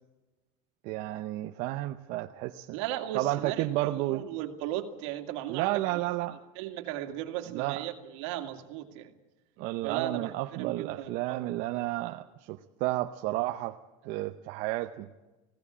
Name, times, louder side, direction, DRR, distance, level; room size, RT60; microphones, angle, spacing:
voice 1, 0.8-2.7 3.1-4.2 5.5-6.4 7.5-7.8 9.6-13.8 14.1-15.1, right 17 dB, 55° right, 0.8 m, -31 dB
voice 2, 2.7-6.0 6.6-9.1 9.8-11.5, right 12 dB, 75° right, 2.2 m, -36 dB
20.5 x 16.5 x 8.6 m
cardioid pair, 160°, 16 cm